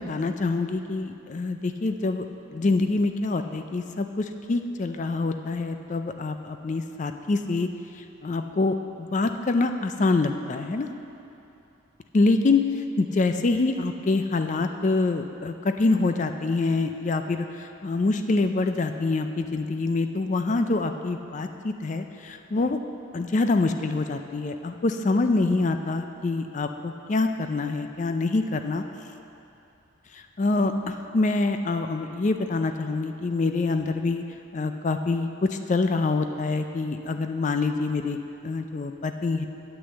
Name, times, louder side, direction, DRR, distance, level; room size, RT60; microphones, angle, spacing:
voice 1, 0.0-2.2 2.5-7.7 8.2-10.9 12.1-12.6 13.0-22.8 23.1-28.8 30.4-34.2 34.5-38.2 38.4-39.5, left 3 dB, 35° left, 7 dB, 0.4 m, -25 dB
8.3 x 6.3 x 7.9 m, 2.8 s
head